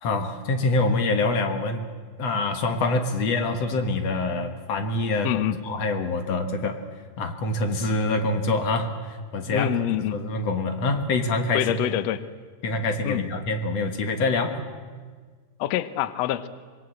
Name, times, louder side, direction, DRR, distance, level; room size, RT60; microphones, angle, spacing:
voice 1, 0.0-1.9 2.2-6.8 7.2-9.8 10.1-11.7 12.6-14.6, left 2 dB, 55° left, 6 dB, 2.4 m, -25 dB
voice 2, 5.2-5.6 9.4-10.2 11.5-12.2 13.0-13.2 15.6-16.5, left 12 dB, 75° left, 13 dB, 1.5 m, -26 dB
26.0 x 21.0 x 7.9 m, 1.5 s
omnidirectional pair, 4.2 m